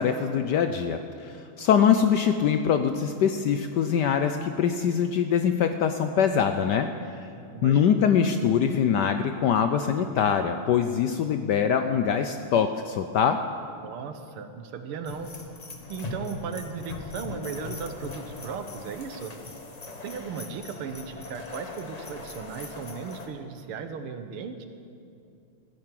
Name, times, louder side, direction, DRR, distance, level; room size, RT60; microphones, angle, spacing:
voice 1, 0.0-6.9 7.6-13.4, left 7 dB, 75° left, 8 dB, 1.0 m, -23 dB
voice 2, 7.3-8.1 13.8-15.3 15.9-19.4 20.0-24.6, right 5 dB, 85° right, 8 dB, 1.9 m, -36 dB
sound 1, 15.1-23.3, left 2 dB, 30° left, 0.8 m, -40 dB
14.5 x 10.5 x 7.5 m, 2.5 s
omnidirectional pair, 2.4 m